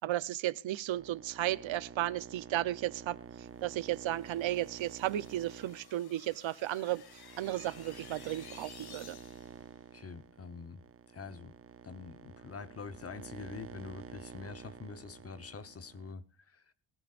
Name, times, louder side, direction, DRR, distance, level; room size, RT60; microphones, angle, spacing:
voice 1, 0.0-3.2 3.6-7.0 7.4-9.2, right 14 dB, 70° right, 0.8 m, -34 dB
sound 1, 0.9-16.1, right 7 dB, 30° right, 0.6 m, -50 dB
sound 2, 3.7-9.7, left 7 dB, 50° left, 1.6 m, -55 dB
voice 2, 9.9-10.8 11.1-11.6 11.8-16.2 16.5-16.6, left 5 dB, 30° left, 1.0 m, -45 dB
22.0 x 15.0 x 2.5 m
wide cardioid pair, 170°, 48 cm